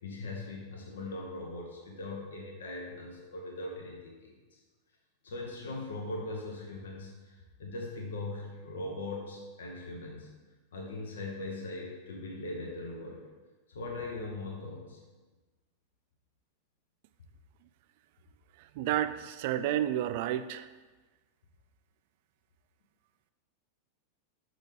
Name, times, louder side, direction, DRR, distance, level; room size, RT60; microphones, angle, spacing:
voice 1, 0.0-4.6 5.2-10.3 10.7-13.3 13.7-15.0, left 2 dB, 65° left, -1 dB, 1.0 m, -40 dB
voice 2, 18.8-20.7, right 12 dB, 50° right, 12 dB, 0.3 m, -30 dB
6.4 x 3.8 x 4.9 m, 1.2 s
figure-of-eight pair, 90°, 0 cm